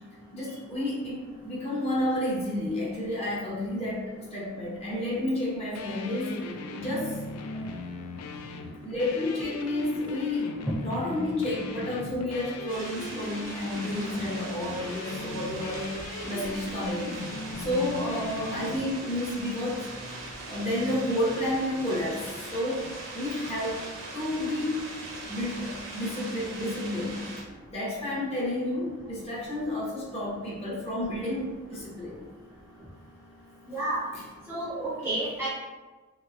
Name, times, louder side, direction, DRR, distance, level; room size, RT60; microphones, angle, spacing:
voice 1, 0.0-7.1 8.8-10.5 10.8-17.2 17.6-19.8 20.5-22.9 23.1-23.8 24.1-24.8 25.3-27.3 27.7-32.2 34.1-34.3, left 1 dB, 30° left, -6 dB, 0.7 m, -31 dB
sound 1, 5.7-18.8, left 3 dB, 90° left, 0.4 m, -38 dB
sound 2, 12.7-27.4, right 2 dB, 60° right, 0.8 m, -40 dB
voice 2, 33.7-34.0 34.5-35.5, right 2 dB, 10° right, -8 dB, 0.6 m, -30 dB
3.1 x 2.9 x 2.4 m, 1.3 s
head